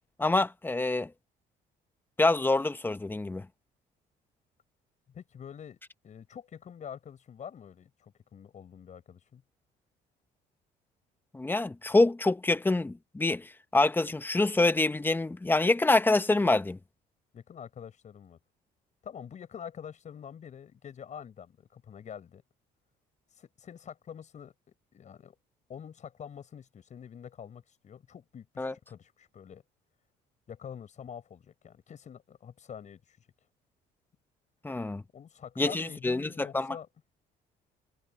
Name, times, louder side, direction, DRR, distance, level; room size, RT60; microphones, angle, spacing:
voice 1, 0.2-1.1 2.2-3.5 11.3-16.8 28.6-28.7 34.6-35.0 35.6-36.8, left 2 dB, 10° left, 1.1 m, -26 dB
voice 2, 5.1-9.4 17.3-18.4 19.0-22.4 23.4-24.5 24.9-25.3 25.7-29.6 30.5-33.2 35.1-36.9, left 8 dB, 45° left, 6.3 m, -46 dB
cardioid pair, 110°, 17 cm